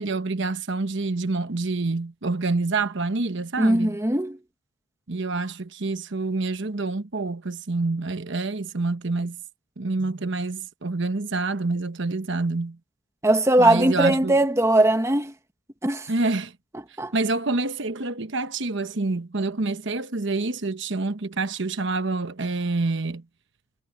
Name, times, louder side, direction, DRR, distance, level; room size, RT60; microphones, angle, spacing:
voice 1, 0.0-4.0 5.1-9.4 9.8-12.8 13.6-14.4 16.1-16.5 17.1-23.2, right 3 dB, 60° right, 1.1 m, -27 dB
voice 2, 3.6-4.4 13.2-15.3 15.8-16.1 17.0-17.1, right 1 dB, 15° right, 1.2 m, -20 dB
head